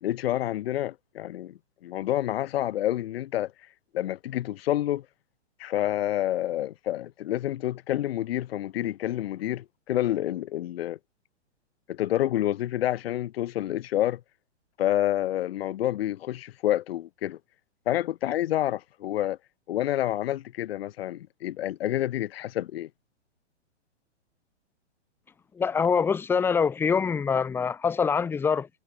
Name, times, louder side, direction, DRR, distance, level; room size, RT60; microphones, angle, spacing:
voice 1, 0.0-5.0 5.6-11.0 11.9-14.2 14.8-17.4 17.8-19.4 19.7-22.9, left 13 dB, 55° left, 1.6 m, -28 dB
voice 2, 25.5-28.7, left 6 dB, 5° left, 0.6 m, -24 dB
hypercardioid pair, 140°, 35 cm